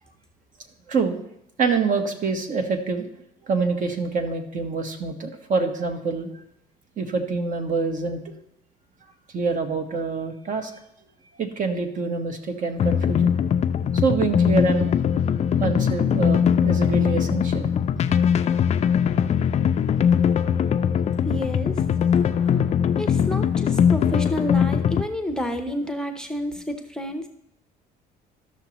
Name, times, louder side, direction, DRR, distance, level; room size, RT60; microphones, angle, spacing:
voice 1, 1.6-3.1 3.5-6.3 7.0-8.3 9.3-10.7 11.4-13.3 13.9-14.9 15.6-17.7, right 4 dB, 50° right, 6 dB, 1.2 m, -26 dB
sound 1, 12.8-25.0, left 8 dB, 40° left, 0.4 m, -21 dB
voice 2, 21.2-21.8 23.0-27.3, left 1 dB, 5° left, 5 dB, 0.7 m, -29 dB
13.5 x 6.2 x 3.0 m, 0.79 s
cardioid pair, 110°, 17 cm